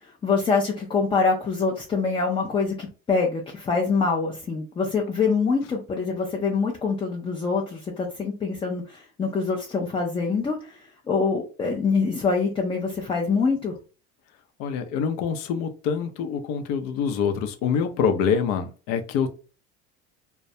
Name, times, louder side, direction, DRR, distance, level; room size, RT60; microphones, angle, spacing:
voice 1, 0.0-13.7, left 4 dB, 15° left, 0 dB, 0.3 m, -25 dB
voice 2, 14.6-19.3, left 6 dB, 70° left, 7 dB, 0.6 m, -25 dB
2.2 x 2.1 x 2.6 m, 0.35 s
supercardioid pair, 95°, 35 cm